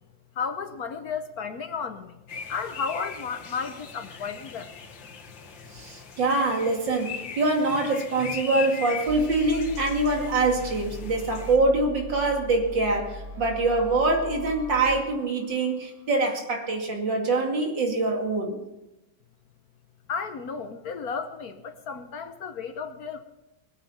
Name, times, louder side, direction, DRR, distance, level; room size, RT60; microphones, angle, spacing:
voice 1, 0.3-2.2 2.5-4.7 20.1-23.2, left 5 dB, 60° left, 8 dB, 1.2 m, -33 dB
sound 1, 2.3-11.6, left 6 dB, 75° left, 2.2 m, -40 dB
voice 2, 5.7-18.6, right 2 dB, 70° right, 1 dB, 3.0 m, -24 dB
sound 2, 9.1-16.0, equal, 25° right, 1.8 m, -40 dB
21.5 x 8.9 x 5.8 m, 0.95 s
omnidirectional pair, 2.1 m